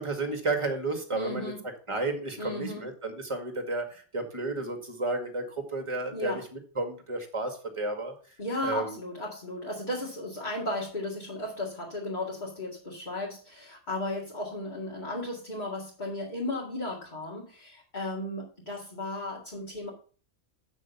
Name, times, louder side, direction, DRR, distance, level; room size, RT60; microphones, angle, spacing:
voice 1, 0.0-1.5 1.9-6.4 6.8-8.1 8.6-8.9, right 2 dB, 20° right, 5 dB, 1.9 m, -32 dB
voice 2, 1.1-1.6 2.4-2.9 6.1-6.4 8.4-19.9, left 1 dB, 35° left, -4 dB, 2.2 m, -35 dB
8.2 x 6.3 x 5.7 m, 0.39 s
omnidirectional pair, 1.4 m